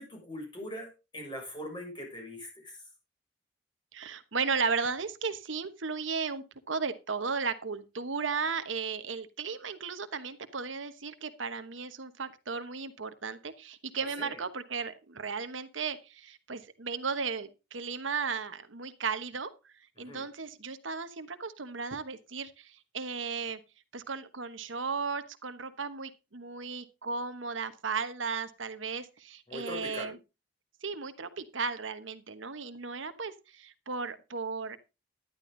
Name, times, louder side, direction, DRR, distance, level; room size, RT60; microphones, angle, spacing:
voice 1, 0.0-2.8 14.0-14.4 20.0-20.2 29.5-30.1, left 1 dB, 25° left, 0 dB, 6.6 m, -41 dB
voice 2, 3.9-23.6 23.9-30.2 30.8-34.8, right 5 dB, 85° right, 11 dB, 1.2 m, -35 dB
11.5 x 11.0 x 3.9 m, 0.28 s
head